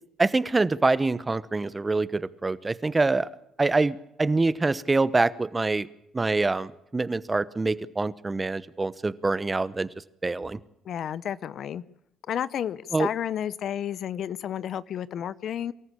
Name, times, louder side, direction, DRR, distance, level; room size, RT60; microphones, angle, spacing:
voice 1, 0.2-3.3 3.6-5.9 6.1-9.9 10.2-10.6 12.9-13.1, right 3 dB, 25° right, 18 dB, 1.0 m, -25 dB
voice 2, 10.8-11.8 12.3-15.7, left 9 dB, 65° left, 19 dB, 0.7 m, -31 dB
24.5 x 14.0 x 8.6 m, 0.81 s
hypercardioid pair, 60°, 0 cm